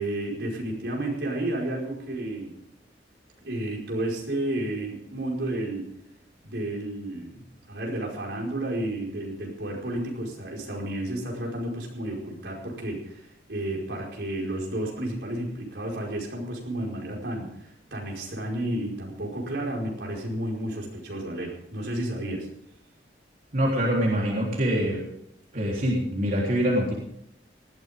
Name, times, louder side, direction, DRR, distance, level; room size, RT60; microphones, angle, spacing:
voice 1, 0.0-2.5 3.4-5.9 6.4-22.5, right 1 dB, 80° right, -1 dB, 5.0 m, -32 dB
voice 2, 23.5-25.0 25.5-26.9, equal, 50° right, -3 dB, 3.6 m, -24 dB
19.5 x 14.5 x 3.7 m, 0.78 s
head